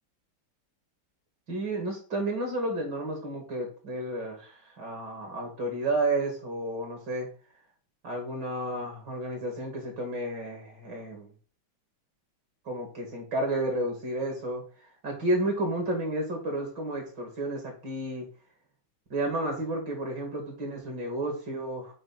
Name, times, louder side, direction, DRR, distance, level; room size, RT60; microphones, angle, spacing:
voice 1, 1.5-7.3 8.0-11.3 12.6-14.6 15.0-18.3 19.1-21.9, right 1 dB, 60° right, 2 dB, 3.0 m, -31 dB
8.8 x 3.2 x 6.0 m, 0.39 s
omnidirectional pair, 2.2 m